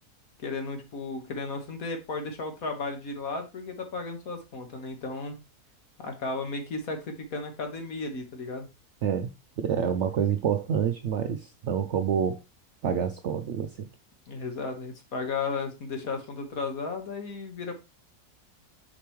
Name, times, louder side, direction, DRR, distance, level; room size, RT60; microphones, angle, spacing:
voice 1, 0.4-5.4 6.0-8.7 14.3-17.7, left 3 dB, 60° left, 1.9 m, -34 dB
voice 2, 9.6-12.4 12.8-13.9, right 8 dB, 70° right, 0.7 m, -27 dB
6.8 x 5.2 x 3.1 m
omnidirectional pair, 1.7 m